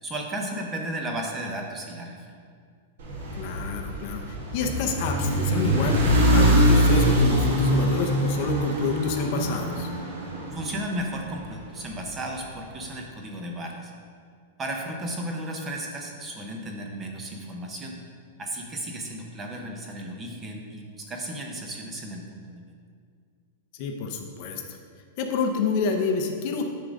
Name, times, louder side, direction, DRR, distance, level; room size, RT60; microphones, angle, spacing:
voice 1, 0.0-2.2 10.5-13.9 14.6-18.0 18.4-22.6, right 1 dB, 15° right, 1 dB, 0.6 m, -34 dB
sound 1, 3.0-11.3, equal, 75° right, 1.7 m, -23 dB
voice 2, 3.3-6.0 6.3-9.9 23.7-24.6 25.2-26.6, left 4 dB, 35° left, 4 dB, 0.6 m, -28 dB
9.8 x 3.7 x 5.2 m, 2.1 s
supercardioid pair, 175°, 0 cm